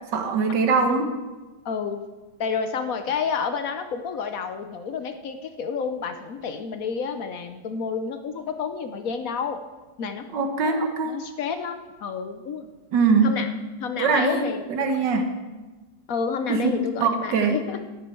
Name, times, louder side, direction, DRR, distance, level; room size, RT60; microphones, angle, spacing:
voice 1, 0.1-1.1 10.3-11.2 12.9-13.3 14.0-15.3 16.5-17.6, right 4 dB, 90° right, 6 dB, 1.9 m, -22 dB
voice 2, 1.6-2.0 2.4-9.6 10.0-10.2 10.6-10.8 11.1-12.7 13.2-13.5 13.8-15.1 16.1-17.8, left 6 dB, 60° left, 8 dB, 1.1 m, -30 dB
14.0 x 10.5 x 4.4 m, 1.2 s
omnidirectional pair, 1.9 m